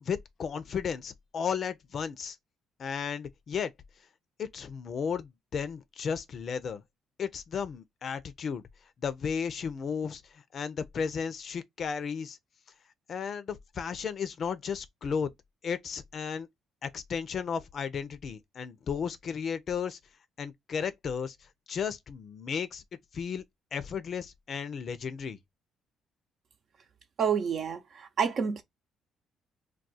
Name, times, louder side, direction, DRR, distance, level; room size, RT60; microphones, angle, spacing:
voice 1, 0.0-2.4 2.8-3.7 4.4-6.8 7.2-8.6 9.0-12.4 13.1-15.3 15.6-16.5 16.8-20.0 20.4-21.4 21.7-22.8 23.1-23.4 23.7-25.4, left 6 dB, 55° left, 0.5 m, -34 dB
voice 2, 27.2-28.6, right 7 dB, 55° right, 0.7 m, -29 dB
2.3 x 2.3 x 4.0 m
supercardioid pair, 70°, 0 cm